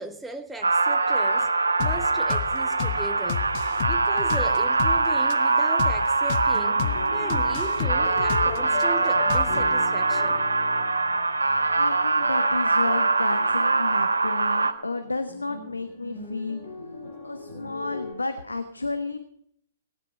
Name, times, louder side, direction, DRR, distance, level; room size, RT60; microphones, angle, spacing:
voice 1, 0.0-1.5 1.8-3.5 3.8-6.8 7.1-10.5, right 2 dB, 5° right, 1.1 m, -38 dB
sound 1, 0.6-14.7, right 3 dB, 85° right, 1.2 m, -23 dB
sound 2, 1.8-2.0 2.3-2.5 2.8-3.0 3.3-5.0 5.3-5.4 5.8-6.0 6.3-6.5 6.8-7.0 7.3-8.8 9.3-9.7, left 9 dB, 45° left, 1.0 m, -30 dB
sound 3, 6.5-18.1, left 4 dB, 65° left, 7.1 m, -39 dB
voice 2, 11.7-16.6 17.2-19.2, left 3 dB, 90° left, 1.1 m, -32 dB
17.5 x 11.0 x 5.3 m
figure-of-eight pair, 120°, 0 cm